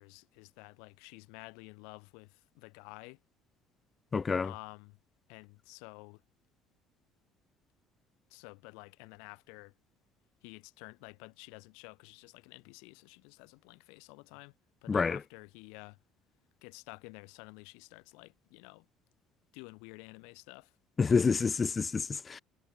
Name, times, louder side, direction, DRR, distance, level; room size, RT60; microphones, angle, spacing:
voice 1, 0.0-3.2 4.4-5.0 5.3-6.2 8.3-9.7 10.4-14.5 14.8-16.0 16.6-18.9 19.5-20.7 21.0-21.3, left 35 dB, 85° left, 7.5 m, -51 dB
voice 2, 4.1-4.5 14.9-15.2 21.0-22.4, left 5 dB, 30° left, 0.4 m, -28 dB
supercardioid pair, 85°, 0 cm